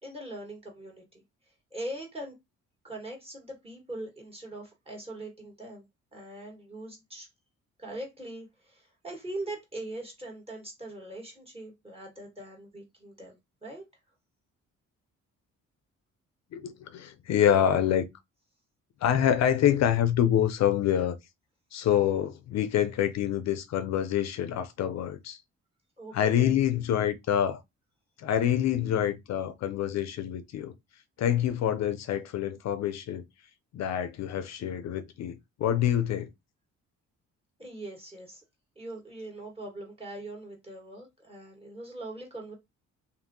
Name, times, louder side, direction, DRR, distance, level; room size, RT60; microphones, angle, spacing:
voice 1, 0.0-1.2 1.7-2.4 2.8-5.9 6.1-7.3 7.8-13.8 26.0-26.6 37.6-38.4 38.7-42.5, right 1 dB, 20° right, 1.4 m, -41 dB
voice 2, 16.5-18.1 19.0-21.2 21.7-25.4 26.1-27.6 28.2-30.7 31.2-33.2 33.7-36.3, left 10 dB, 60° left, 0.5 m, -26 dB
2.6 x 2.5 x 2.6 m
cardioid pair, 90°, 30 cm